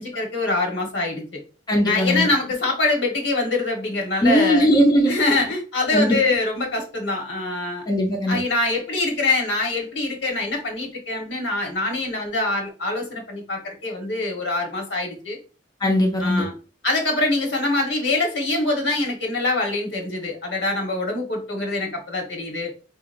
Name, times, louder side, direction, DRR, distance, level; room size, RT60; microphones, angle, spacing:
voice 1, 0.0-1.4 1.8-4.7 5.1-7.8 8.3-15.4 16.2-16.5 16.8-22.7, left 2 dB, 70° left, 1 dB, 1.3 m, -24 dB
voice 2, 1.7-2.3 4.2-5.2 5.9-6.2 7.9-8.4 15.8-16.4, equal, 20° left, 0 dB, 0.7 m, -19 dB
4.5 x 2.9 x 2.5 m, 0.35 s
head